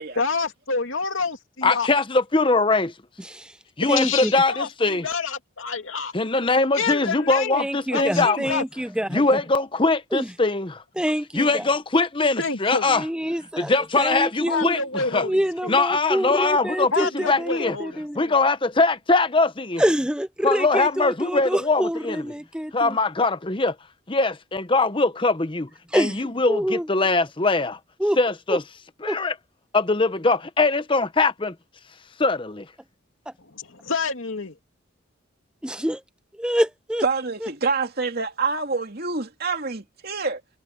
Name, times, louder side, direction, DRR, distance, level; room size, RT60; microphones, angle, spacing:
voice 1, 0.2-1.9 4.0-6.1 6.7-8.6 12.4-12.9 14.5-15.7 16.9-18.4 33.5-34.5, left 4 dB, 80° left, 2.5 m, -28 dB
voice 2, 1.6-2.9 3.8-5.1 6.1-8.5 9.1-10.8 11.3-13.0 13.6-15.2 15.7-16.9 17.3-17.8 18.2-19.8 20.4-22.2 22.7-23.7 24.1-27.8 28.2-28.6 29.0-29.3 29.7-31.5 32.2-32.6, left 3 dB, 25° left, 0.9 m, -22 dB
voice 3, 3.9-4.3 7.5-9.4 10.1-10.3 11.0-11.7 12.9-14.8 15.2-18.3 19.8-23.0 25.9-26.2 26.5-26.9 28.0-28.2 28.5-28.6 29.1-29.2 35.6-36.0 36.4-37.0, equal, 5° right, 0.7 m, -26 dB
voice 4, 37.0-40.4, right 4 dB, 50° right, 2.8 m, -26 dB
head